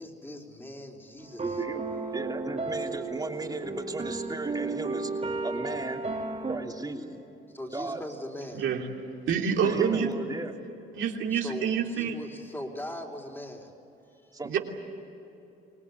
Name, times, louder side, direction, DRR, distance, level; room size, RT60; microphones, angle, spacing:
voice 1, 0.0-1.6 7.5-8.6 11.3-13.7 14.1-14.3, left 1 dB, 10° left, 0 dB, 4.2 m, -40 dB
sound 1, 1.2-6.6, right 3 dB, 35° right, 3.0 m, -34 dB
voice 2, 1.4-1.8 2.1-5.1 5.4-6.0 6.5-7.1 7.7-8.0 9.6-10.5 14.3-14.6, right 2 dB, 20° right, 2 dB, 3.1 m, -35 dB
voice 3, 8.5-8.8 9.3-10.1 10.9-12.1 14.4-14.6, right 7 dB, 75° right, 1 dB, 3.1 m, -27 dB
26.0 x 19.0 x 9.8 m, 2.9 s
cardioid pair, 90°, 20 cm